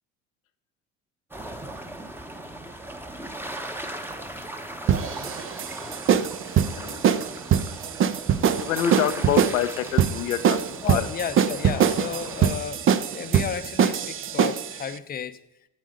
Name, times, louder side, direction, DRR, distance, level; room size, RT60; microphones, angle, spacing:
sound 1, 1.3-12.6, right 1 dB, 5° right, 0.9 m, -38 dB
sound 2, 4.9-14.8, right 8 dB, 35° right, 0.5 m, -23 dB
voice 1, 8.6-10.6 10.8-11.1, left 9 dB, 85° left, 9 dB, 0.7 m, -26 dB
voice 2, 10.8-12.8 13.1-15.4, left 8 dB, 25° left, 11 dB, 0.6 m, -32 dB
8.3 x 7.6 x 5.2 m, 0.84 s
hypercardioid pair, 65°, 40 cm